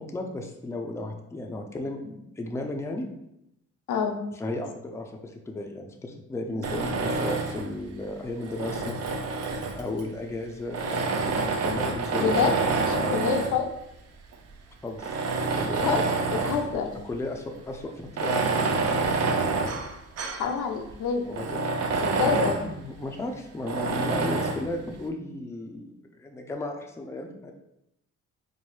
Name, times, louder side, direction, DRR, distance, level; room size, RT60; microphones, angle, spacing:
voice 1, 0.0-3.1 4.3-12.4 13.0-13.4 14.8-15.1 15.5-15.9 17.0-19.2 21.2-21.6 22.1-27.5, left 2 dB, 10° left, 3 dB, 0.4 m, -35 dB
Tools, 6.6-7.7 8.4-10.0 10.7-13.6 14.3-14.4 15.0-16.7 17.1-17.2 18.0-20.5 20.9-21.0 21.3-22.7 23.7-24.7, right 3 dB, 55° right, 0.6 m, -27 dB
voice 2, 12.2-12.5 12.8-13.7 15.8-16.9 20.3-21.2 22.0-22.5, left 6 dB, 80° left, 4 dB, 0.6 m, -27 dB
4.5 x 2.1 x 3.1 m, 0.83 s
cardioid pair, 90°, 30 cm